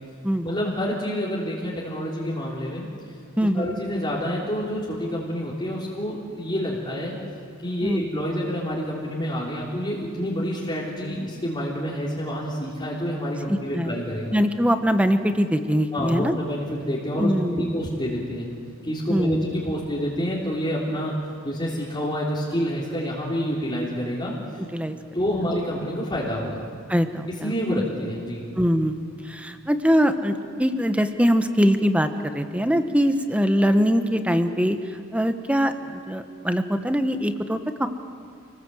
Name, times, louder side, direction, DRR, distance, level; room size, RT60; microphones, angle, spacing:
voice 1, 0.4-2.9 3.5-7.2 7.6-14.3 15.9-18.5 18.8-21.1 21.4-24.3 25.1-26.7 27.3-28.5, equal, 25° left, -6 dB, 3.5 m, -28 dB
voice 2, 3.4-3.7 7.8-8.1 13.5-14.0 14.3-16.3 17.2-17.8 19.1-19.5 24.7-25.0 26.9-27.8 28.5-37.9, equal, 5° right, 8 dB, 1.1 m, -23 dB
29.0 x 20.5 x 7.9 m, 2.2 s
head